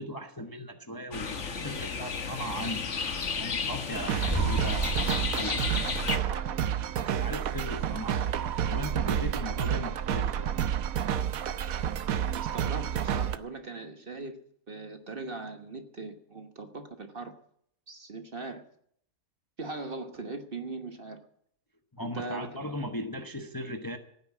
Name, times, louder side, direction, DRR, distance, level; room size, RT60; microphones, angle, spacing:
voice 1, 0.0-2.9 3.4-5.9 6.3-6.6 7.0-8.2 8.7-10.6 22.0-24.0, equal, 15° left, 0.9 m, -38 dB
sound 1, 1.1-6.2, left 5 dB, 60° left, 1.5 m, -33 dB
sound 2, 3.9-13.4, right 9 dB, 80° right, 1.2 m, -30 dB
sound 3, 4.3-10.0 10.3-10.4, right 1 dB, 10° right, 4.4 m, -37 dB
voice 2, 12.1-14.4 14.7-17.3 17.9-18.6 19.6-21.2 22.1-22.6, right 3 dB, 40° right, 1.4 m, -40 dB
15.5 x 9.5 x 7.3 m
omnidirectional pair, 1.5 m